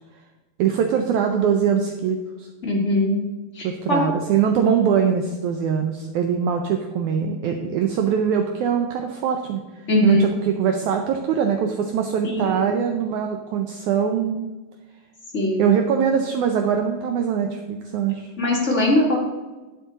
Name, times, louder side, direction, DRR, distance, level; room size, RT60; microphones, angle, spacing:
voice 1, 0.6-2.5 3.6-14.5 15.6-18.3, right 7 dB, 85° right, 5 dB, 1.7 m, -22 dB
voice 2, 2.6-3.2 3.5-4.0 9.9-10.3 12.2-12.8 15.3-15.7 18.4-19.2, left 1 dB, 35° left, -3 dB, 1.1 m, -21 dB
11.0 x 7.6 x 4.0 m, 1.2 s
omnidirectional pair, 4.2 m